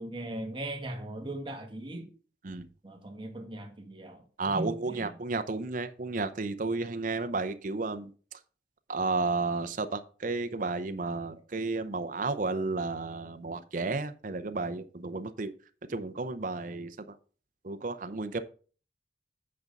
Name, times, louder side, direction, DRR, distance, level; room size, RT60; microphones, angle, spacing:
voice 1, 0.0-2.1 2.8-5.1, right 1 dB, 30° right, 1.3 m, -39 dB
voice 2, 4.4-8.1 8.9-15.5 15.9-17.2 17.6-18.4, right 3 dB, 45° right, 0.6 m, -32 dB
8.7 x 5.2 x 5.3 m
head